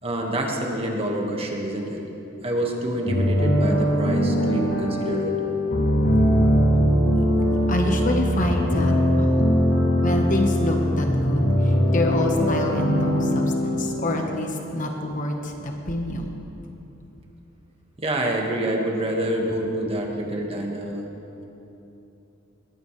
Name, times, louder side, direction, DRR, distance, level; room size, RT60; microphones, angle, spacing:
voice 1, 0.0-2.0 2.4-5.4 6.1-6.3 18.0-21.0, right 1 dB, 30° right, 0 dB, 1.6 m, -27 dB
sound 1, 3.1-14.8, equal, 65° left, 2.7 m, -21 dB
voice 2, 7.7-9.5 10.0-16.4, left 1 dB, 40° left, 2 dB, 1.2 m, -26 dB
20.0 x 14.5 x 3.3 m, 3.0 s
head